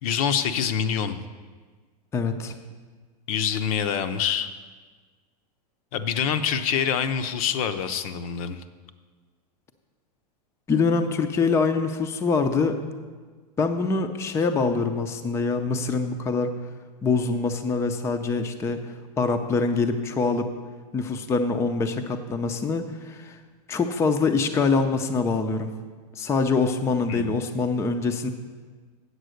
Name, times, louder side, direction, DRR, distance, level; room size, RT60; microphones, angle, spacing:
voice 1, 0.0-1.2 3.3-4.5 5.9-8.6 27.1-27.3, left 7 dB, 55° left, 10 dB, 0.7 m, -26 dB
voice 2, 2.1-2.5 10.7-12.8 13.6-16.5 17.0-20.5 20.9-23.4 23.7-25.7 26.2-28.3, left 4 dB, 15° left, 6 dB, 0.5 m, -24 dB
8.0 x 7.4 x 6.4 m, 1.4 s
hypercardioid pair, 130°, 21 cm